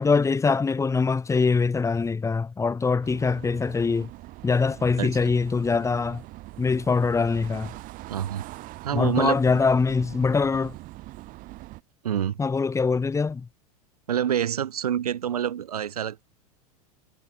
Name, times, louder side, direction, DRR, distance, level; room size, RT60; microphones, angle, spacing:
voice 1, 0.0-4.1 4.4-6.2 6.6-7.7 8.9-10.7 12.4-13.5, left 4 dB, 15° left, 2.6 m, -23 dB
sound 1, 3.0-11.8, right 19 dB, 45° right, 5.2 m, -43 dB
voice 2, 5.0-5.3 8.1-8.4 8.8-9.4 12.0-12.4 14.1-16.2, right 9 dB, 70° right, 4.4 m, -27 dB
figure-of-eight pair, 85°, 20 cm